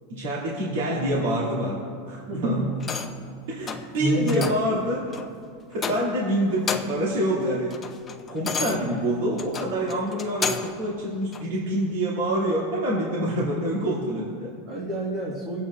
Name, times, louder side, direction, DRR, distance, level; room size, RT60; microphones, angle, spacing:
voice 1, 0.1-2.6 3.5-5.1 5.7-7.8 8.3-14.5, right 1 dB, 80° right, -7 dB, 2.5 m, -26 dB
voice 2, 2.3-2.6 4.0-4.5 14.7-15.6, right 1 dB, 50° right, -4 dB, 1.8 m, -27 dB
sound 1, 2.8-3.3 3.6-3.9 4.3-4.7 5.1-5.3 5.7-6.2 6.5-7.1 7.5-10.8 11.3-11.5, left 6 dB, 20° left, 0.7 m, -32 dB
23.5 x 8.4 x 2.5 m, 2.2 s
supercardioid pair, 135°, 0 cm